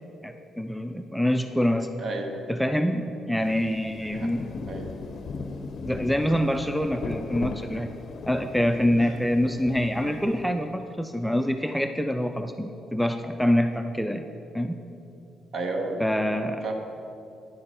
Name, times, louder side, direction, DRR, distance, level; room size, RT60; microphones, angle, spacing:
voice 1, 0.2-1.9 2.5-4.5 5.9-7.9 8.3-14.3 14.5-14.8 16.0-16.6, equal, ahead, 6 dB, 0.4 m, -25 dB
voice 2, 2.0-2.4 4.1-4.3 4.7-4.9 8.9-9.1 10.0-10.2 15.5-16.0 16.6-16.7, right 2 dB, 55° right, 3 dB, 1.1 m, -32 dB
Rain, 3.5-10.7, left 4 dB, 55° left, 0.5 m, -38 dB
9.4 x 6.6 x 4.3 m, 2.7 s
cardioid pair, 90°, 0 cm